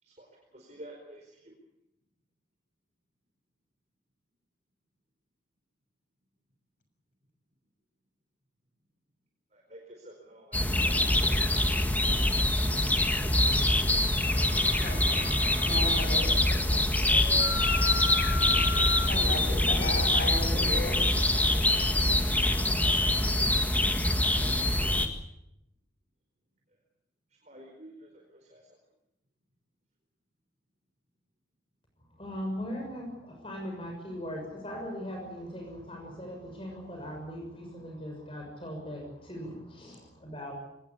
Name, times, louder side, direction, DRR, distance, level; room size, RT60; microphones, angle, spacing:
voice 1, 0.0-1.5 9.5-10.6 10.8-11.3 27.4-28.7, right 1 dB, 40° right, 0 dB, 4.6 m, -50 dB
sound 1, 10.5-25.1, left 1 dB, 10° left, 1.8 m, -25 dB
sound 2, 14.3-16.2 17.1-21.1, left 4 dB, 75° left, 2.9 m, -37 dB
voice 2, 14.8-15.3 15.6-16.4 19.1-21.2, left 2 dB, 50° left, 5 dB, 6.7 m, -35 dB
voice 3, 32.1-40.5, equal, 30° left, 1 dB, 6.5 m, -39 dB
24.0 x 20.0 x 8.5 m, 0.85 s
head